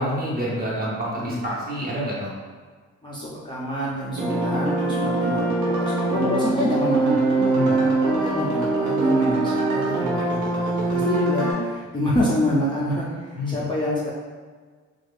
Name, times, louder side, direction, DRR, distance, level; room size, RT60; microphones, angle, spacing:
voice 1, 0.0-2.3 7.4-7.8 13.3-13.7, equal, 30° right, -6 dB, 1.1 m, -28 dB
voice 2, 1.2-1.5 3.0-14.1, left 1 dB, 15° left, -8 dB, 0.6 m, -27 dB
sound 1, 4.1-11.5, right 2 dB, 75° right, 1.0 m, -23 dB
2.4 x 2.4 x 3.4 m, 1.5 s
cardioid pair, 90°, 30 cm